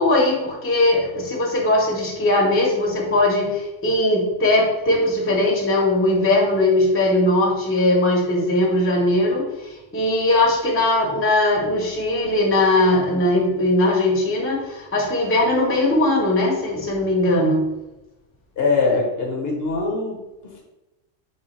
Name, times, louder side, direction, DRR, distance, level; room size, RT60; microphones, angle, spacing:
voice 1, 0.0-17.7, left 1 dB, 15° left, -2 dB, 0.7 m, -19 dB
voice 2, 18.6-20.6, left 3 dB, 55° left, 0 dB, 1.0 m, -23 dB
3.4 x 3.3 x 4.5 m, 1.0 s
omnidirectional pair, 1.3 m